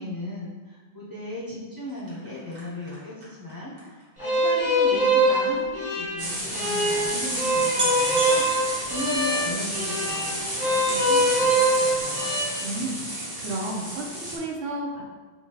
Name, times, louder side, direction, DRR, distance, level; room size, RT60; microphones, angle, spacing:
voice 1, 0.0-12.3, left 1 dB, 30° left, -7 dB, 0.5 m, -36 dB
sound 1, 1.8-5.4 6.3-6.4 6.5-6.7 7.3-7.4 7.7-9.7 10.1-10.5 10.7-10.8, right 1 dB, 55° right, 1.3 m, -36 dB
sound 2, 4.2-12.4, right 1 dB, 5° right, 1.1 m, -23 dB
sound 3, 6.2-14.4, right 1 dB, 25° right, 0.7 m, -31 dB
voice 2, 12.6-15.0, right 2 dB, 85° right, 0 dB, 1.0 m, -32 dB
3.7 x 2.9 x 2.8 m, 1.3 s
omnidirectional pair, 1.2 m